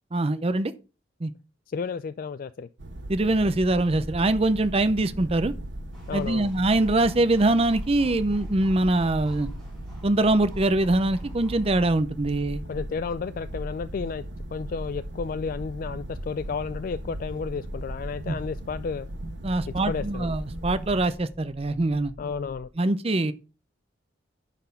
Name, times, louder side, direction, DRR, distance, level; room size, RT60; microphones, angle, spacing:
voice 1, 0.1-0.7 1.2-1.3 3.1-5.5 6.1-9.5 10.0-12.6 18.3-18.4 19.4-22.1 22.8-23.3, right 2 dB, 35° right, 0.6 m, -23 dB
voice 2, 1.7-2.7 6.1-6.5 12.7-14.2 14.5-19.1 19.9-20.3 22.2-22.7, left 5 dB, 50° left, 0.3 m, -32 dB
sound 1, 2.8-22.7, equal, 20° left, 1.1 m, -46 dB
sound 2, 2.8-21.1, right 1 dB, 80° right, 1.2 m, -38 dB
sound 3, 5.9-11.9, equal, ahead, 4.2 m, -54 dB
9.9 x 4.2 x 5.3 m
head